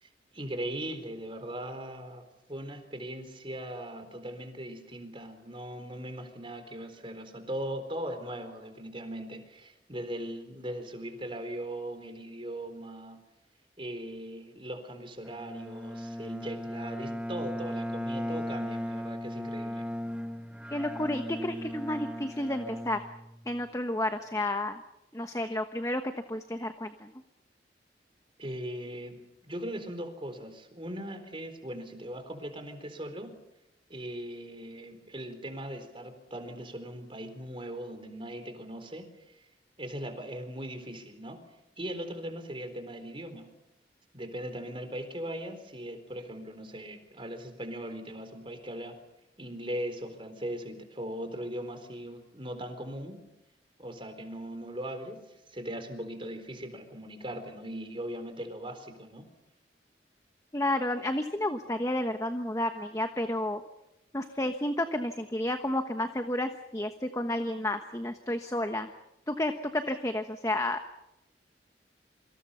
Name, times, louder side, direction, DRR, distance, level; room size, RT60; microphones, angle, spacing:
voice 1, 0.0-13.2 13.8-19.9 28.4-33.4 33.9-39.5 39.8-41.4 41.8-43.5 44.1-49.0 49.4-53.2 53.8-59.3, right 1 dB, 30° right, 7 dB, 4.0 m, -39 dB
Bowed string instrument, 15.2-23.7, equal, 5° right, 0.9 m, -37 dB
voice 2, 20.7-23.0 23.5-24.8 25.1-26.0 26.3-27.1 60.5-63.6 64.1-68.9 69.3-70.8, left 1 dB, 20° left, 7 dB, 1.1 m, -31 dB
28.0 x 25.5 x 5.7 m, 0.87 s
head